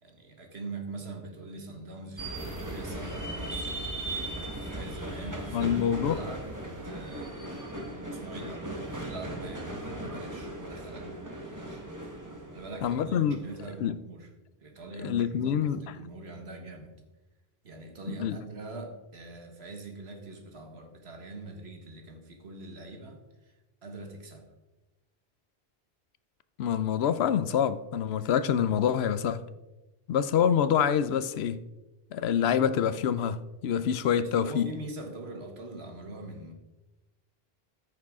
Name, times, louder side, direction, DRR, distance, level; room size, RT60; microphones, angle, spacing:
voice 1, 0.0-3.8 4.5-5.8 6.1-7.3 8.0-11.9 12.5-14.3 14.6-16.9 17.6-23.5 23.8-24.5 34.2-36.5, right 2 dB, 80° right, 1.7 m, -43 dB
sound 1, 2.2-13.8, right 1 dB, 20° right, 1.4 m, -38 dB
voice 2, 5.5-6.2 12.8-13.4 13.8-14.0 15.0-15.9 18.1-18.4 26.6-29.4 30.1-31.6 32.1-34.7, left 8 dB, 80° left, 0.8 m, -26 dB
14.0 x 6.7 x 3.6 m
omnidirectional pair, 1.1 m